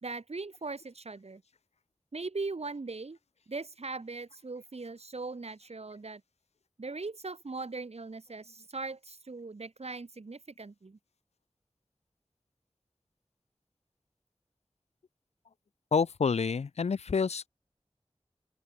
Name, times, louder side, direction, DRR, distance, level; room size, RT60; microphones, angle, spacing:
voice 1, 0.0-1.4 2.1-3.2 3.5-6.2 6.8-11.0, right 3 dB, 75° right, 2.2 m, -40 dB
voice 2, 15.9-17.5, left 5 dB, 80° left, 0.4 m, -28 dB
open air
wide cardioid pair, 50°, 11 cm